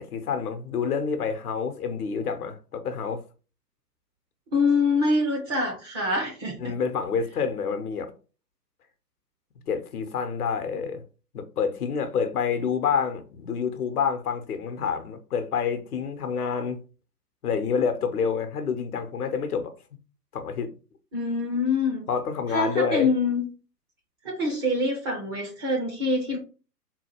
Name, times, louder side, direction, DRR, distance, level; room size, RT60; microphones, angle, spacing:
voice 1, 0.0-3.2 6.6-8.1 9.7-11.0 11.3-16.8 17.4-19.7 20.3-20.7 22.1-23.1, left 6 dB, 65° left, 0.9 m, -28 dB
voice 2, 4.5-6.7 21.1-22.1 22.5-23.5 24.2-26.4, left 3 dB, 15° right, 0.5 m, -25 dB
4.0 x 2.3 x 4.3 m
figure-of-eight pair, 120°, 49 cm